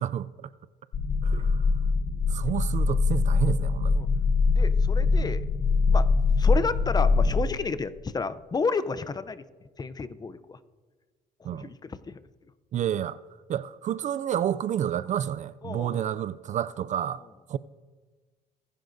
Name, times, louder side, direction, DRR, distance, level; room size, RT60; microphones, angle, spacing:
voice 1, 0.0-0.5 1.2-1.7 2.3-4.0 11.4-11.7 12.7-13.2 13.5-17.2 17.5-17.6, right 10 dB, 45° right, 0.4 m, -29 dB
sound 1, 0.9-7.5, left 4 dB, 55° left, 1.1 m, -23 dB
voice 2, 4.4-5.5 5.9-6.1 6.4-9.4 9.8-10.6 11.4-12.2 15.6-16.1, left 4 dB, 25° left, 0.6 m, -31 dB
24.5 x 11.5 x 2.6 m
cardioid pair, 110°, 17 cm